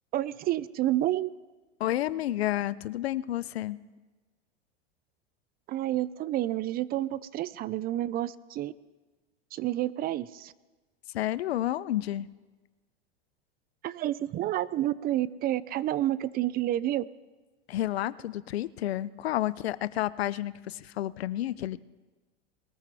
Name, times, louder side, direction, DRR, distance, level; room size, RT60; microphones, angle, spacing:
voice 1, 0.1-1.3 5.7-8.7 9.5-10.5 13.8-17.0, right 13 dB, 30° right, 19 dB, 0.4 m, -29 dB
voice 2, 1.8-3.8 11.1-12.3 17.7-21.8, left 13 dB, 85° left, 18 dB, 0.6 m, -30 dB
21.5 x 14.0 x 3.5 m, 1.2 s
hypercardioid pair, 105°, 30 cm